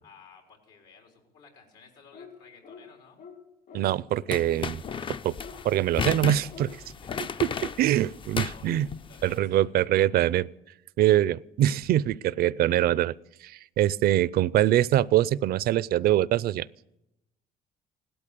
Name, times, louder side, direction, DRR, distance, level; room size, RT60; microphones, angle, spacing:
voice 1, 0.0-3.2 6.8-10.1, left 5 dB, 85° left, 2 dB, 4.2 m, -55 dB
sound 1, 2.1-2.4 2.6-2.8 3.2-3.4 3.7-3.9 4.3-4.4 4.8-5.0 5.4-5.6 6.0-6.1 6.5-6.7 7.1-7.3, left 5 dB, 65° left, 5.7 m, -45 dB
voice 2, 3.7-4.8 5.2-5.4 5.6-6.7 7.8-8.9 9.2-10.5 11.0-13.1 13.4-16.7, right 12 dB, 65° right, 21 dB, 0.5 m, -23 dB
sound 2, 4.3-9.3, left 6 dB, 30° left, 0.5 m, -34 dB
17.0 x 12.5 x 6.8 m, 0.86 s
cardioid pair, 110°, 17 cm